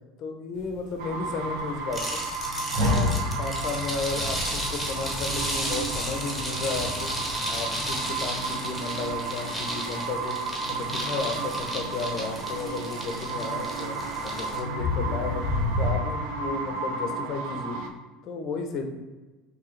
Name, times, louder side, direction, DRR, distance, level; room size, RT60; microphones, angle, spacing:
voice 1, 0.2-2.2 2.7-7.1 7.5-10.4 10.7-17.8 18.2-18.8, left 4 dB, 35° left, 5 dB, 0.5 m, -33 dB
sound 1, 0.6-15.9, left 2 dB, 80° right, 1.2 m, -32 dB
sound 2, 1.0-17.9, right 3 dB, 65° right, 0.5 m, -34 dB
sound 3, 1.9-14.6, equal, ahead, 0.7 m, -34 dB
4.7 x 3.2 x 3.1 m, 1.2 s
cardioid pair, 180°, 0 cm